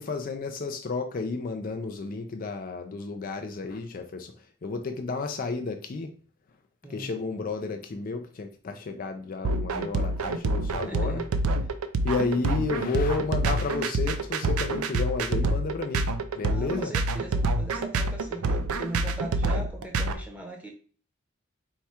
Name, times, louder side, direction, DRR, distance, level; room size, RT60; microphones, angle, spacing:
voice 1, 0.0-6.1 6.9-11.2 12.0-16.1 16.4-16.9, left 3 dB, 40° left, 5 dB, 0.4 m, -32 dB
sound 1, 9.4-20.1, right 2 dB, 85° right, 0.5 m, -27 dB
voice 2, 10.9-11.3 16.5-20.7, right 1 dB, 5° right, 1 dB, 0.8 m, -40 dB
4.6 x 2.3 x 4.2 m, 0.41 s
head